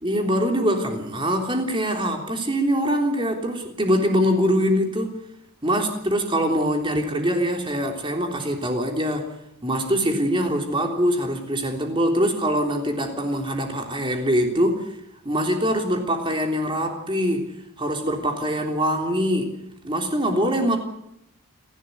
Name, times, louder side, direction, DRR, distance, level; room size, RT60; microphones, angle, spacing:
voice 1, 0.0-5.1 5.6-9.3 9.6-14.9 15.3-19.5 19.8-20.8, equal, 20° right, 3.5 m, -23 dB
30.0 x 12.5 x 9.6 m
head